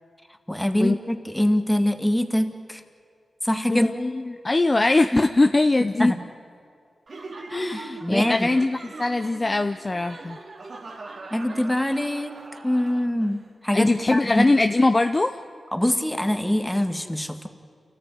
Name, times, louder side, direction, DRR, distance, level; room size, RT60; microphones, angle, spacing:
voice 1, 0.5-2.8 3.4-3.9 5.1-5.2 6.0-6.2 7.7-8.5 11.3-12.4 12.6-14.5 15.7-17.5, left 1 dB, 10° left, 7 dB, 1.9 m, -24 dB
voice 2, 3.7-6.1 7.5-10.4 13.7-15.4, left 2 dB, 35° left, 8 dB, 0.7 m, -21 dB
Laughter, 7.1-13.4, right 3 dB, 60° right, 2.4 m, -41 dB
28.5 x 14.5 x 9.7 m, 2.2 s
cardioid pair, 55°, 0 cm